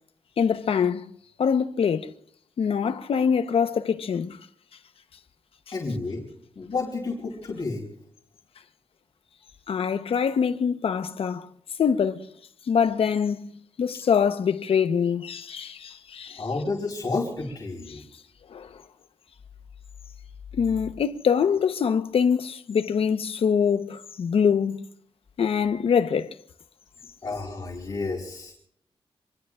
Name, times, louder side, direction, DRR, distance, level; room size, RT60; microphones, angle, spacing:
voice 1, 0.4-1.0 1.4-2.1 2.6-4.4 9.7-11.5 11.8-12.3 12.7-13.5 13.8-16.4 17.9-18.0 18.5-18.7 20.6-24.8 25.4-26.3, left 7 dB, 75° left, 0.9 m, -24 dB
voice 2, 5.7-6.3 6.6-7.9 16.3-18.0 27.2-28.5, left 3 dB, 40° left, 4.3 m, -30 dB
26.5 x 21.0 x 2.5 m
wide cardioid pair, 170°, 10 cm